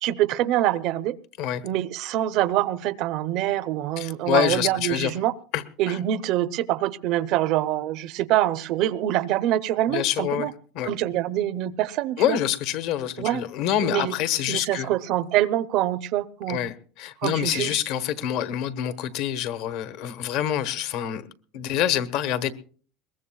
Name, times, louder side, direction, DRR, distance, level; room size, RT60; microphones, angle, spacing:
voice 1, 0.0-1.2 1.6-5.3 5.8-10.5 10.8-12.4 13.2-13.4 13.8-14.1 14.5-16.6 17.2-17.8, right 13 dB, 60° right, 15 dB, 0.6 m, -25 dB
voice 2, 4.0-5.1 5.5-6.0 9.9-10.5 10.7-10.9 12.2-14.9 16.5-21.2 21.5-22.5, left 11 dB, 65° left, 12 dB, 1.1 m, -26 dB
22.0 x 19.5 x 2.3 m, 0.42 s
supercardioid pair, 130°, 0 cm